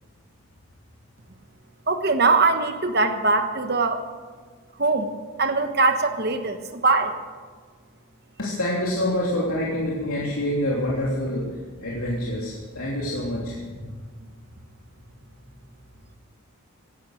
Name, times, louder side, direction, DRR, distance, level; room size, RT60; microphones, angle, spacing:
voice 1, 1.9-4.0 4.8-5.1 5.4-7.2, right 3 dB, 45° right, 7 dB, 1.3 m, -21 dB
voice 2, 8.4-11.5 11.8-13.8, left 1 dB, 80° left, -5 dB, 3.0 m, -26 dB
17.0 x 11.5 x 6.5 m, 1.5 s
head